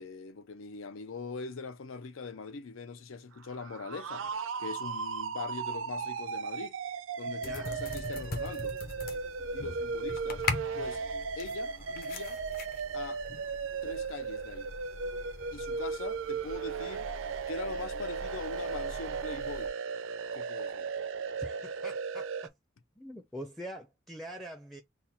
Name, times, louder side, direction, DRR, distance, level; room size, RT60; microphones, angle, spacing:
voice 1, 0.0-4.3 4.6-6.8 7.2-8.7 9.5-10.4 10.7-11.0 11.4-12.4 12.9-13.2 13.8-14.7 15.5-17.1 17.5-19.7 20.3-20.9, left 4 dB, 85° left, 0.5 m, -42 dB
sound 1, 3.4-22.5, right 5 dB, 80° right, 0.5 m, -36 dB
voice 2, 7.3-7.7 21.4-22.5 23.0-24.8, equal, ahead, 0.4 m, -44 dB
sound 2, 7.4-19.7, left 3 dB, 45° left, 0.8 m, -42 dB
4.1 x 2.2 x 4.1 m
head